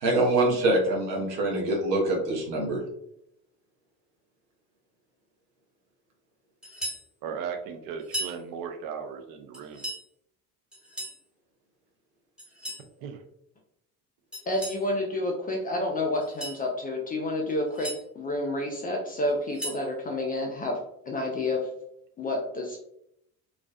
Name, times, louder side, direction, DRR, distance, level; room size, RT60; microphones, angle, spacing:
voice 1, 0.0-2.8, right 2 dB, 85° right, 0 dB, 0.8 m, -24 dB
sound 1, 6.6-7.1 8.0-8.4 9.5-10.0 10.7-11.2 12.4-12.9 14.3-14.8 16.1-16.6 17.5-18.0 19.3-19.9, right 1 dB, ahead, 0.9 m, -36 dB
voice 2, 7.2-9.8 13.0-13.2, right 6 dB, 45° right, 6 dB, 0.5 m, -36 dB
voice 3, 14.5-17.9 18.2-20.8 21.1-21.6 22.2-22.8, left 1 dB, 20° left, 0 dB, 0.3 m, -29 dB
2.3 x 2.3 x 2.2 m, 0.75 s
hypercardioid pair, 65°, 48 cm